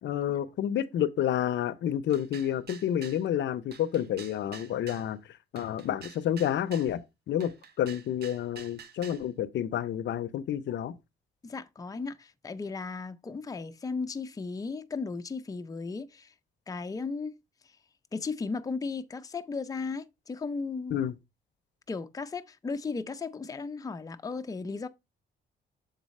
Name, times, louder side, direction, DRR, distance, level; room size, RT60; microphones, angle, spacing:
voice 1, 0.0-7.0 7.3-7.5 7.8-10.9 20.9-21.1, left 10 dB, 65° left, 0.6 m, -29 dB
sound 1, 2.1-3.2 3.7-5.1 5.6-6.9 7.4-9.2, right 7 dB, 55° right, 0.9 m, -48 dB
voice 2, 11.4-16.3 16.7-17.4 17.6-17.8 18.1-21.0 21.9-24.9, left 4 dB, 15° left, 0.5 m, -35 dB
7.2 x 3.9 x 4.0 m
cardioid pair, 90°, 20 cm